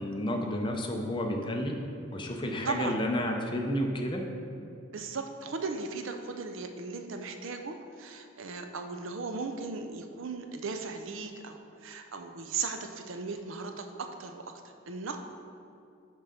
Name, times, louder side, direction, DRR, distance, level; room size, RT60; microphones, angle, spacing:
voice 1, 0.0-1.8 2.1-4.3, equal, 25° left, 2 dB, 0.7 m, -31 dB
voice 2, 2.6-3.0 4.9-14.5 14.9-15.3, right 4 dB, 70° right, 5 dB, 0.6 m, -37 dB
8.8 x 3.8 x 5.8 m, 2.6 s
head